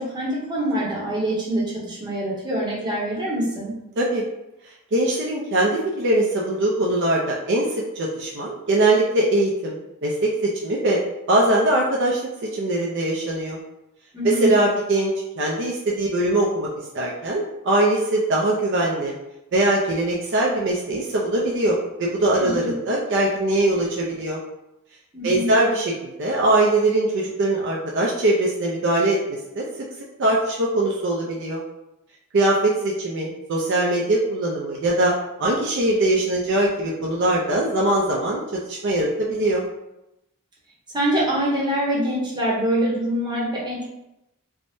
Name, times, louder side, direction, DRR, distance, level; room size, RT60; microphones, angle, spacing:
voice 1, 0.0-3.7 14.1-14.5 22.4-22.7 25.1-25.5 40.9-43.8, right 1 dB, 20° right, -6 dB, 0.7 m, -24 dB
voice 2, 4.9-7.7 8.0-11.0 11.3-12.2 12.5-13.6 14.2-16.7 16.9-19.1 19.5-24.4 25.2-29.2 29.5-29.7 30.2-31.6 32.3-35.1 35.4-38.4 38.7-39.6, right 1 dB, 55° right, -3 dB, 0.4 m, -21 dB
3.4 x 2.0 x 2.6 m, 0.92 s
head